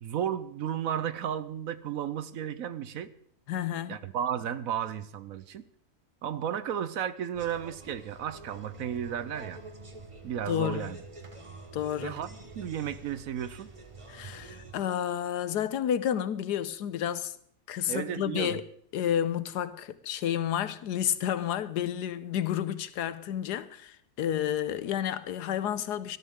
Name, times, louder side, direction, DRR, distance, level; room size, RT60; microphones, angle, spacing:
voice 1, 0.0-3.1 3.9-5.7 6.2-9.6 10.2-11.0 12.0-13.7 17.9-18.6, right 9 dB, 65° right, 1.1 m, -33 dB
voice 2, 3.5-4.0 10.5-10.9 11.7-12.2 14.1-17.4 17.7-18.6 18.9-26.2, left 10 dB, 90° left, 1.4 m, -30 dB
sound 1, 7.3-14.8, right 3 dB, 25° right, 0.9 m, -47 dB
19.5 x 13.0 x 3.7 m
omnidirectional pair, 1.7 m